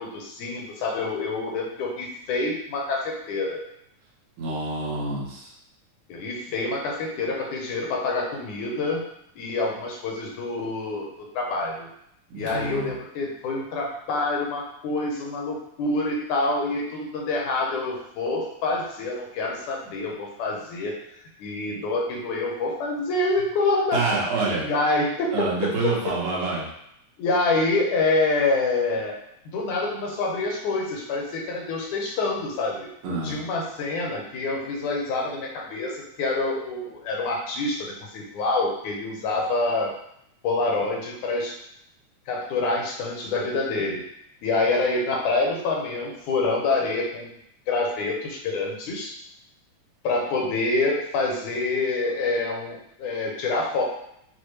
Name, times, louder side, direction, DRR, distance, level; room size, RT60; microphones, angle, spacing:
voice 1, 0.0-3.6 6.1-9.0 9.4-11.1 11.3-11.9 12.3-21.0 21.4-24.1 24.6-26.1 27.2-29.2 29.5-32.9 33.2-39.9 40.4-41.5 42.3-44.0 44.4-47.3 47.7-49.1 50.0-53.8, left 3 dB, 80° left, -1 dB, 2.3 m, -26 dB
voice 2, 4.4-5.5 12.3-12.9 23.9-24.6 25.3-26.7 33.0-33.4, right 3 dB, 85° right, -5 dB, 2.6 m, -27 dB
6.5 x 2.3 x 3.2 m, 0.75 s
omnidirectional pair, 3.4 m